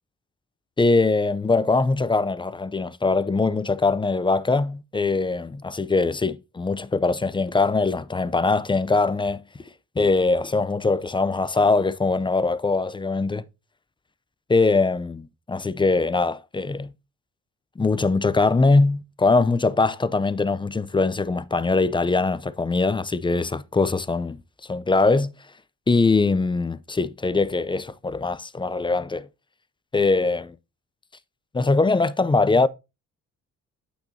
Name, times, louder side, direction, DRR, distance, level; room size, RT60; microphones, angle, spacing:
voice 1, 0.8-9.4 10.0-13.4 14.5-16.9 17.8-24.4 24.7-25.3 25.9-29.3 29.9-30.5 31.5-32.7, left 3 dB, 15° left, 0.5 m, -22 dB
9.0 x 8.3 x 2.7 m
cardioid pair, 90°, 30 cm